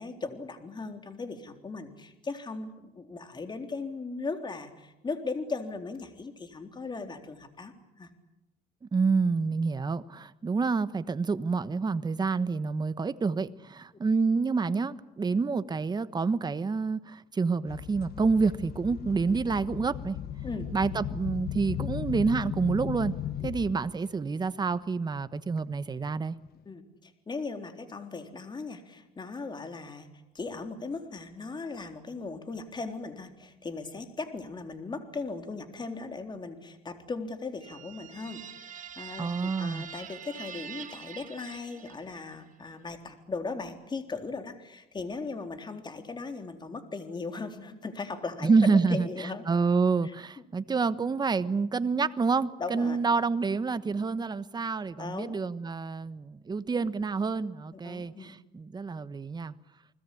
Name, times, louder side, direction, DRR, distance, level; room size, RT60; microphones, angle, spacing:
voice 1, 0.0-8.1 20.4-20.7 23.4-23.5 26.7-30.1 30.3-49.4 50.0-50.1 52.6-53.0 55.0-55.5 57.8-58.4, left 3 dB, 25° left, 3.7 m, -38 dB
voice 2, 8.9-20.2 20.7-23.1 23.4-26.4 39.2-39.9 48.4-49.1 49.5-59.5, right 4 dB, 25° right, 1.2 m, -28 dB
sound 1, 17.7-23.9 24.5-24.7 25.6-25.7 26.5-26.6, left 10 dB, 65° left, 1.7 m, -36 dB
sound 2, 37.6-42.3, right 8 dB, 50° right, 2.2 m, -44 dB
30.0 x 20.5 x 8.6 m
cardioid pair, 110°, 17 cm